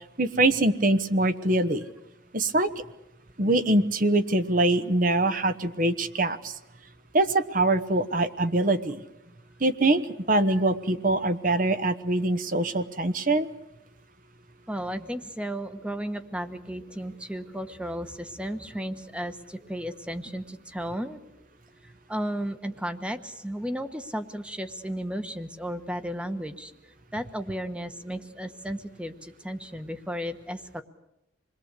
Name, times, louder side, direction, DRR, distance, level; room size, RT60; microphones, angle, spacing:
voice 1, 0.2-1.8 2.3-2.8 3.4-6.5 7.1-9.0 9.6-10.0 10.3-13.5, right 2 dB, 45° right, 10 dB, 1.2 m, -23 dB
voice 2, 14.7-21.2 21.8-30.8, equal, 5° right, 10 dB, 1.2 m, -34 dB
27.5 x 21.0 x 8.2 m, 0.89 s
head